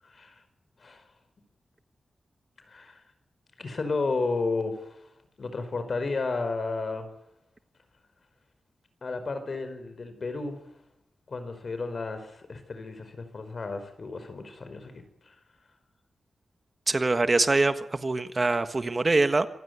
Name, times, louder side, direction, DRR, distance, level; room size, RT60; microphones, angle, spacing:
voice 1, 0.0-0.4 0.8-1.0 2.7-3.0 3.6-5.0 5.4-7.1 9.0-10.6 11.3-15.3, left 3 dB, 55° left, 10 dB, 5.0 m, -32 dB
voice 2, 16.9-19.5, right 3 dB, 35° right, 9 dB, 1.5 m, -24 dB
26.5 x 15.5 x 9.6 m, 0.89 s
wide cardioid pair, 100°, 0 cm